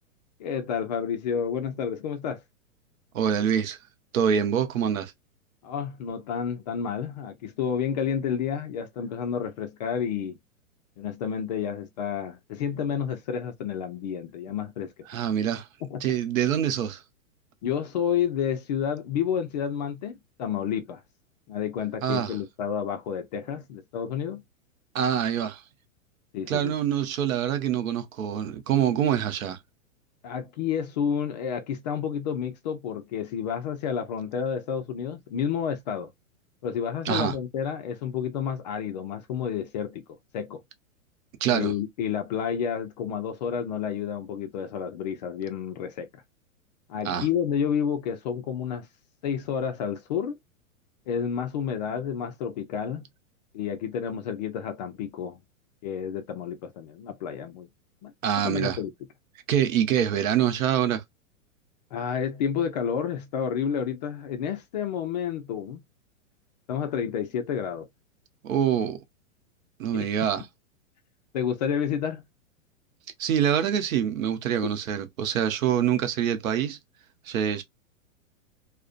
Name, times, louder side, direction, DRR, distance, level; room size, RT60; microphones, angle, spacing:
voice 1, 0.4-2.4 5.6-10.4 11.0-14.9 15.8-16.1 17.6-21.0 21.5-24.4 26.3-26.7 30.2-36.1 36.6-40.0 40.3-40.6 41.5-46.1 46.9-48.9 49.2-50.4 51.1-53.0 53.5-55.4 55.8-57.7 58.0-58.1 58.4-58.9 61.9-65.8 66.7-67.9 69.9-70.0 71.3-72.2 74.6-74.7, left 8 dB, 35° left, 0.4 m, -30 dB
voice 2, 3.1-3.8 4.1-5.1 15.1-15.7 16.0-17.0 22.0-22.4 24.9-25.6 26.5-29.6 37.0-37.4 41.4-41.7 47.0-47.3 58.2-58.8 59.5-61.0 68.4-69.0 69.8-70.4 73.2-76.8 77.2-77.6, right 9 dB, 75° right, 0.7 m, -25 dB
2.4 x 2.1 x 2.3 m
hypercardioid pair, 140°, 42 cm